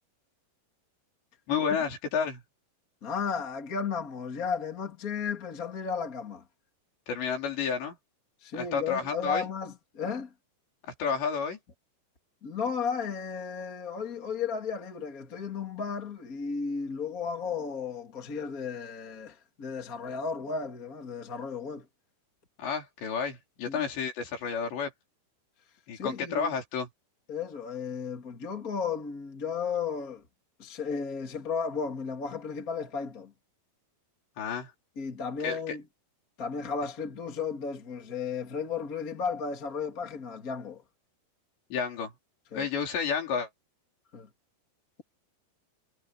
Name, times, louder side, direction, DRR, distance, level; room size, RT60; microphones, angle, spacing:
voice 1, 1.5-2.4 7.1-8.0 8.5-9.5 11.0-11.6 22.6-24.9 25.9-26.9 34.4-34.7 35.4-35.8 41.7-42.1 42.5-43.5, left 6 dB, 75° left, 6.7 m, -31 dB
voice 2, 3.0-6.4 8.4-10.3 12.4-21.9 23.7-23.8 25.9-26.5 27.3-30.2 30.6-33.3 35.0-35.8 36.4-40.8 42.5-42.7 44.1-44.3, left 5 dB, 30° left, 1.7 m, -34 dB
omnidirectional pair, 5.1 m